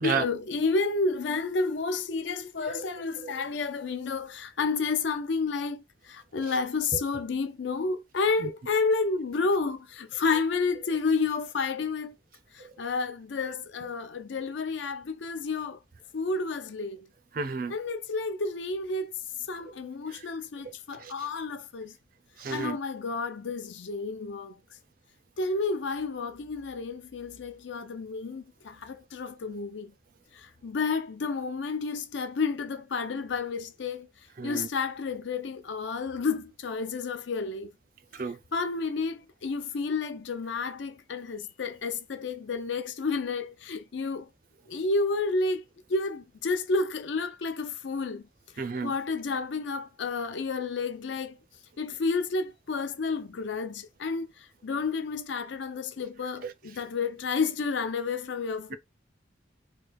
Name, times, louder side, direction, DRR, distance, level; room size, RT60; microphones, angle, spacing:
voice 1, 0.0-12.2 12.5-15.8 16.1-17.0 17.7-19.1 19.5-21.9 22.5-24.5 25.4-29.9 30.4-34.1 34.4-37.7 38.5-44.3 44.7-45.6 45.9-48.2 48.8-51.4 51.8-54.3 54.6-58.8, left 4 dB, 80° left, 0.5 m, -30 dB
voice 2, 17.3-17.7 21.0-21.1 22.4-22.8 34.4-34.7 38.1-38.4 48.6-48.9 56.4-56.5, right 5 dB, 50° right, 0.4 m, -31 dB
3.2 x 2.3 x 3.3 m
head